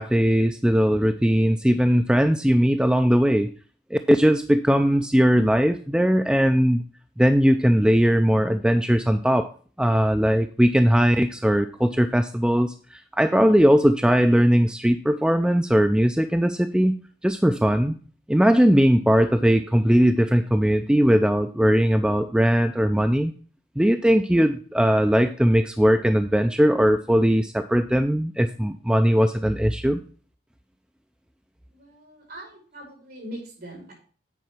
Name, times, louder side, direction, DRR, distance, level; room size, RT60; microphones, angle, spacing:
voice 1, 0.0-3.5 3.9-6.8 7.2-9.5 9.8-17.0 17.2-17.9 18.3-23.3 23.8-30.0, equal, 5° right, 7 dB, 0.3 m, -19 dB
voice 2, 31.7-33.9, right 1 dB, 55° right, -2 dB, 5.5 m, -41 dB
9.3 x 4.6 x 5.8 m, 0.41 s
head